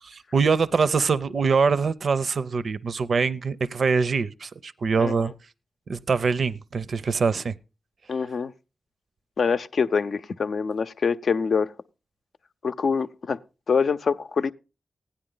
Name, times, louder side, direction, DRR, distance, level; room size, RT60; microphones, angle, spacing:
voice 1, 0.0-5.3 5.9-7.5, right 5 dB, 70° right, 0.5 m, -24 dB
voice 2, 5.0-5.3 8.1-8.5 9.4-11.7 12.6-13.4 13.7-14.5, left 5 dB, 75° left, 0.6 m, -25 dB
16.0 x 10.0 x 3.9 m
cardioid pair, 60°, 0 cm